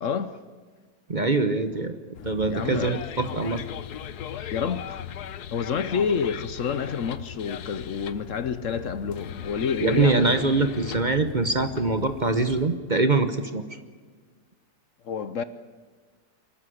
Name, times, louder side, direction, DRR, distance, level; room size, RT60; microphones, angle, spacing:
voice 1, 0.0-0.4 2.4-3.0 4.5-5.0 5.5-10.4 15.0-15.4, left 6 dB, 60° left, 1.1 m, -28 dB
voice 2, 1.1-2.0 2.2-3.6 4.4-4.5 9.8-13.6, right 3 dB, 35° right, 1.0 m, -23 dB
sound 1, 2.2-12.7, left 10 dB, 90° left, 1.4 m, -38 dB
24.5 x 14.0 x 9.9 m
omnidirectional pair, 1.6 m